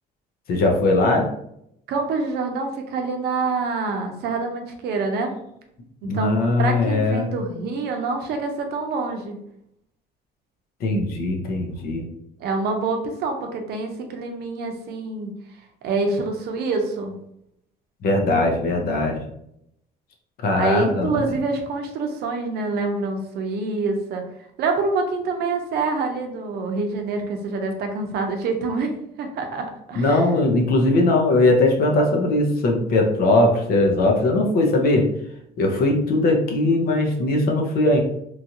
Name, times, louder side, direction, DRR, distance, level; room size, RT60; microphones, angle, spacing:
voice 1, 0.5-1.3 6.0-7.3 10.8-12.1 18.0-19.2 20.4-21.2 30.0-35.1 35.6-38.0, left 2 dB, 65° left, 2 dB, 0.7 m, -20 dB
voice 2, 1.9-5.3 6.0-9.4 12.4-15.3 15.8-17.1 20.6-24.2 24.6-28.9 29.2-30.3, right 3 dB, 70° right, 3 dB, 0.6 m, -26 dB
3.0 x 2.5 x 2.8 m, 0.76 s
cardioid pair, 110°, 17 cm